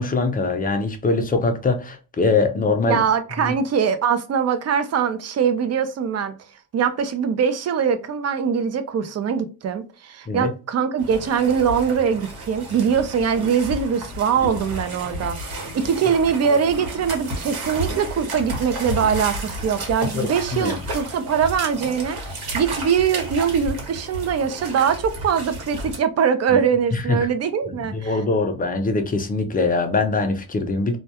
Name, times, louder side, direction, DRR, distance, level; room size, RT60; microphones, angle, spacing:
voice 1, 0.0-3.0 3.4-3.5 10.3-10.5 20.1-20.8 26.5-26.6 26.9-27.2 27.8-31.0, left 3 dB, 25° left, 0.4 m, -22 dB
voice 2, 2.9-6.3 6.7-28.2, right 7 dB, 45° right, 0.4 m, -22 dB
sound 1, 11.0-26.0, right 1 dB, 80° right, 1.1 m, -32 dB
2.2 x 2.2 x 2.7 m
cardioid pair, 135°, 37 cm